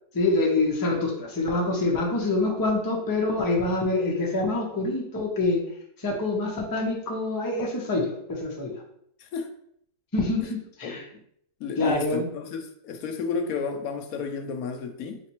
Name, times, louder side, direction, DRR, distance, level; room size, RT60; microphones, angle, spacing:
voice 1, 0.1-5.6 6.0-8.8 10.1-11.0 11.8-12.3, left 2 dB, 35° left, 0.3 m, -26 dB
voice 2, 10.8-11.2 11.6-15.2, left 5 dB, 70° left, 0.9 m, -32 dB
4.0 x 3.3 x 2.9 m
omnidirectional pair, 1.7 m